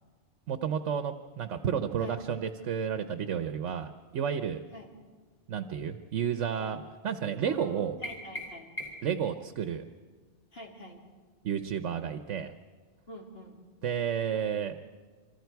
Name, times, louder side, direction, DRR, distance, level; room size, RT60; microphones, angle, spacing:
voice 1, 0.5-4.6 5.5-7.9 9.0-9.8 11.4-12.5 13.8-14.8, right 8 dB, 80° right, 9 dB, 1.1 m, -31 dB
voice 2, 7.4-8.7 10.5-11.0 13.1-13.6, equal, 55° left, 0 dB, 2.8 m, -44 dB
sound 1, 8.0-9.2, equal, 35° left, 2.5 m, -40 dB
25.5 x 25.5 x 4.6 m, 1.5 s
omnidirectional pair, 1.2 m